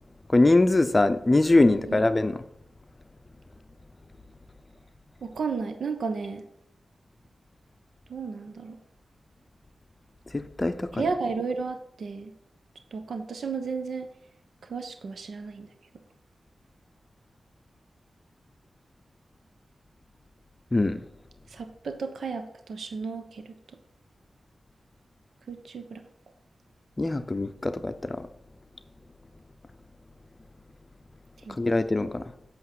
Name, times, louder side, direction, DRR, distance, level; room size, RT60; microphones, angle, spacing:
voice 1, 0.3-2.4 10.3-11.0 20.7-21.0 27.0-28.3 31.5-32.2, left 2 dB, 20° left, 0.6 m, -22 dB
voice 2, 1.7-2.0 5.2-6.4 8.1-8.8 10.9-12.3 12.9-14.1 14.6-15.7 21.5-23.6 25.5-26.0 31.4-31.6, right 4 dB, 80° right, 1.0 m, -33 dB
8.3 x 6.4 x 7.6 m
wide cardioid pair, 165°, 0 cm